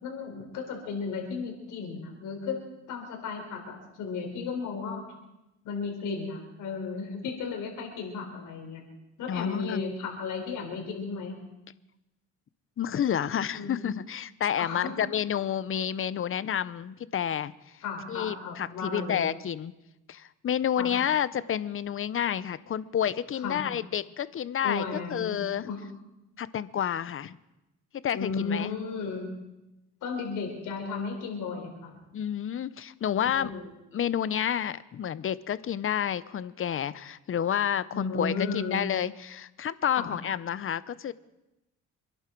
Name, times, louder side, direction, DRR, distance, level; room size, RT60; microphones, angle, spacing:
voice 1, 0.0-2.6 2.9-5.1 5.6-8.8 9.2-11.4 13.5-13.8 14.6-14.9 17.8-19.3 20.8-20.9 23.4-23.6 24.6-25.8 28.1-29.3 30.0-32.0 33.3-33.7 37.9-38.9 40.0-40.1, left 4 dB, 85° left, 2 dB, 4.1 m, -34 dB
voice 2, 9.3-9.8 12.8-17.5 18.1-19.7 20.1-25.7 26.4-27.4 28.0-28.7 32.1-33.5 33.9-41.1, left 9 dB, 45° left, 17 dB, 0.7 m, -30 dB
26.5 x 11.0 x 4.6 m, 0.94 s
cardioid pair, 90°, 30 cm